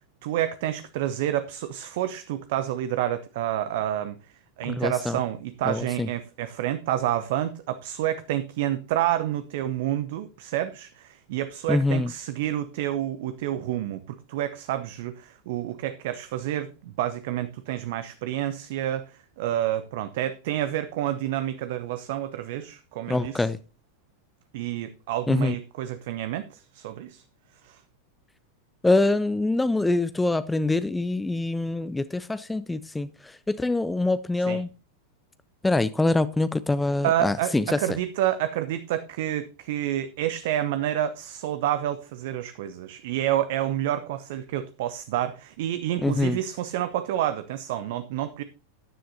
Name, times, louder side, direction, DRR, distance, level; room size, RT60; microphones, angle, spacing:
voice 1, 0.2-4.2 4.6-23.5 24.5-27.2 27.6-27.8 34.5-34.6 37.0-48.4, right 12 dB, 50° right, 0.7 m, -29 dB
voice 2, 4.6-5.2 5.7-6.1 11.7-12.1 23.1-23.6 25.3-25.5 28.8-34.7 35.6-37.8 46.0-46.4, left 2 dB, 5° left, 0.5 m, -24 dB
13.5 x 10.0 x 2.7 m
figure-of-eight pair, 90°, 0 cm